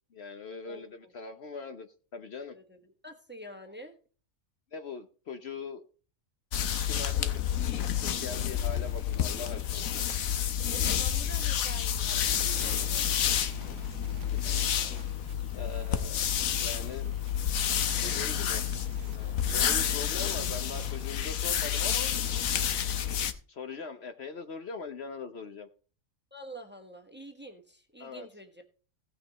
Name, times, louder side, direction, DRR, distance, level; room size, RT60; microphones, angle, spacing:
voice 1, 0.1-2.6 4.7-5.8 6.8-7.4 7.9-9.9 14.4-14.5 15.5-16.2 16.5-17.1 18.0-18.6 19.0-22.1 23.5-25.7 28.0-28.3, left 5 dB, 55° left, 8 dB, 1.0 m, -41 dB
voice 2, 0.6-1.1 2.4-4.0 10.7-13.1 26.3-28.7, right 1 dB, 10° right, 6 dB, 1.2 m, -47 dB
sound 1, 6.5-23.3, left 9 dB, 85° left, 1.3 m, -29 dB
sound 2, 12.1-21.2, right 7 dB, 65° right, 1.3 m, -49 dB
16.5 x 6.1 x 4.1 m, 0.38 s
omnidirectional pair, 1.4 m